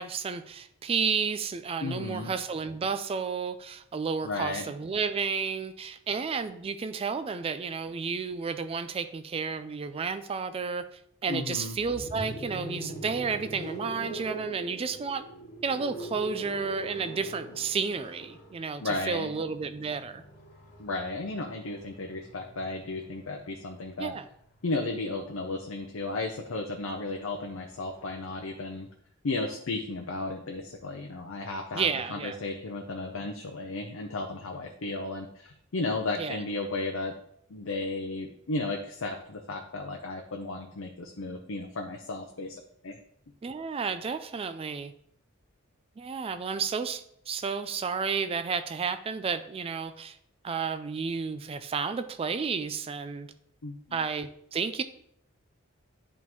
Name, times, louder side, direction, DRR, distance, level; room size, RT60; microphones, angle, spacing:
voice 1, 0.0-15.3 15.6-20.2 24.0-24.3 31.7-32.4 36.2-36.4 43.4-44.9 46.0-50.2 50.4-53.3 53.9-54.8, right 5 dB, 30° right, 11 dB, 0.3 m, -32 dB
voice 2, 1.8-2.3 4.2-4.7 11.3-11.8 18.8-19.3 20.8-24.1 24.6-28.9 29.2-37.2 37.5-43.0 53.6-54.0, left 2 dB, 80° left, 3 dB, 0.7 m, -34 dB
sound 1, 11.7-23.7 24.9-28.5, right 1 dB, 50° left, 2.0 m, -44 dB
10.5 x 3.6 x 3.1 m, 0.71 s
head